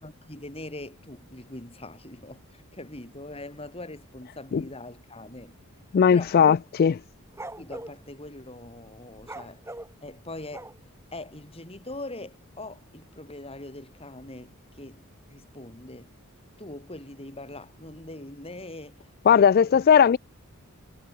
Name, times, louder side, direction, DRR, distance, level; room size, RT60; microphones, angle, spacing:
voice 1, 0.0-5.6 6.1-6.5 7.6-9.6 10.0-10.7 11.1-16.1 16.6-19.4, left 2 dB, 25° left, 4.0 m, -42 dB
voice 2, 5.9-7.0 19.3-20.2, left 7 dB, 45° left, 0.3 m, -18 dB
sound 1, 6.9-8.0 9.2-11.0, right 2 dB, 10° right, 6.0 m, -41 dB
head